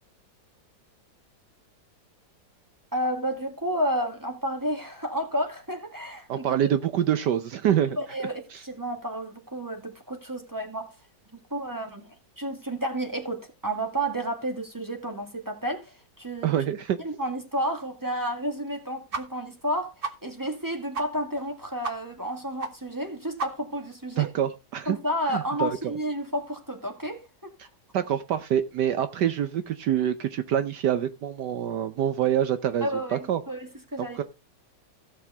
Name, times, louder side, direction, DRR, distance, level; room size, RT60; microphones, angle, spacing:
voice 1, 2.9-6.6 8.0-10.9 11.3-16.5 17.0-19.9 20.2-24.3 24.9-27.5 32.8-34.2, right 1 dB, 10° right, 1.8 m, -31 dB
voice 2, 6.3-8.0 8.5-8.6 16.4-17.0 24.2-25.0 25.3-26.0 27.9-33.4 34.2-34.3, right 10 dB, 70° right, 1.3 m, -26 dB
sound 1, 19.1-19.2 19.5-19.6 20.0-20.2 20.5-20.6 20.9-21.1 21.4-21.5 21.8-21.9 22.2-22.3 22.6-22.7 23.0-23.1 23.4-23.8, right 4 dB, 35° right, 1.2 m, -32 dB
15.5 x 6.5 x 3.4 m
omnidirectional pair, 2.0 m